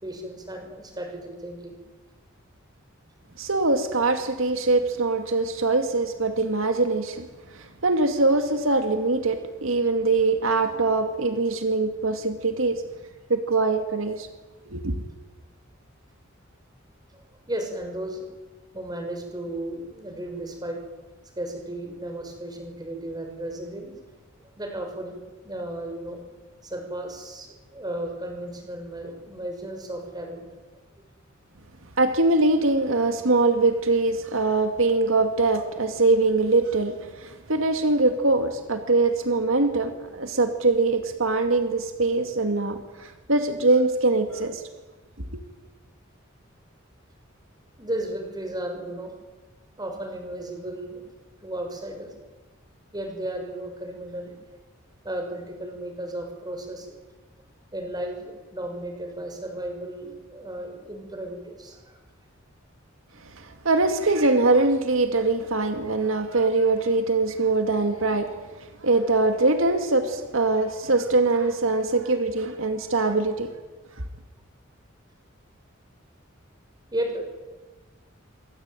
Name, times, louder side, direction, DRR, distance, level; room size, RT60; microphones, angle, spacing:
voice 1, 0.0-1.8 17.1-18.3 18.7-20.8 21.4-23.9 24.6-26.2 26.6-30.5 47.8-49.1 49.8-51.0 51.4-52.1 52.9-54.4 55.0-56.9 57.7-62.0 76.9-77.2, right 1 dB, 20° right, 4 dB, 6.2 m, -34 dB
voice 2, 3.4-7.3 7.5-12.8 13.3-14.3 14.7-14.9 32.0-44.6 45.2-45.4 63.4-68.4 68.8-73.5, right 3 dB, 70° right, 7 dB, 2.3 m, -23 dB
27.0 x 24.0 x 9.2 m, 1.2 s
head